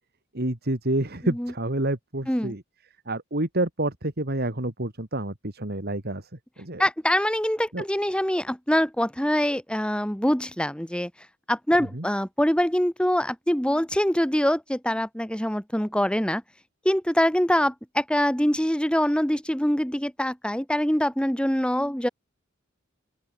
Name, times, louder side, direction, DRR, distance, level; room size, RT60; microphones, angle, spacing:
voice 1, 0.3-2.6 3.1-6.3 6.6-6.8 7.7-7.8 11.9-12.0, right 1 dB, 50° right, 2.8 m, -28 dB
voice 2, 6.8-11.1 11.5-16.4 16.9-22.1, equal, 5° left, 1.9 m, -24 dB
open air
head